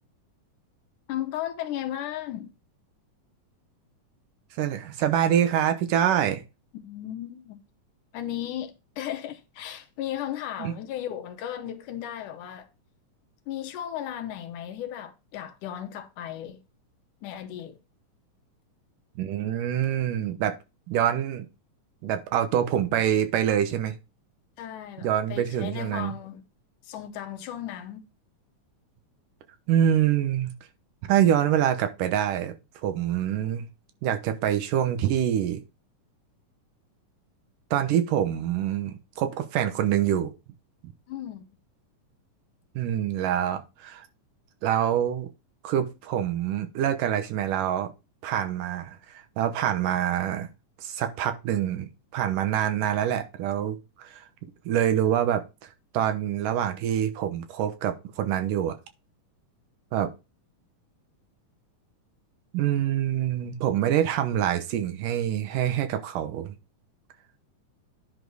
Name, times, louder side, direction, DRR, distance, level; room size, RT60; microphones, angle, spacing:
voice 1, 1.1-2.5 6.8-7.6 8.1-12.7 13.5-16.6 17.2-17.8 24.6-26.4 26.8-28.1 41.1-41.5, left 11 dB, 75° left, 2.3 m, -35 dB
voice 2, 4.6-6.4 10.6-10.7 19.2-20.5 20.9-21.5 22.0-24.0 25.0-26.1 29.7-30.5 31.1-32.5 32.8-33.7 34.0-35.6 37.7-40.3 42.8-44.0 44.6-45.3 45.6-47.9 48.2-49.0 49.4-50.5 50.8-51.9 52.1-54.2 54.7-55.4 55.9-58.8 59.9-60.1 62.5-66.5, right 10 dB, 80° right, 2.5 m, -25 dB
10.5 x 4.2 x 4.7 m
omnidirectional pair, 3.8 m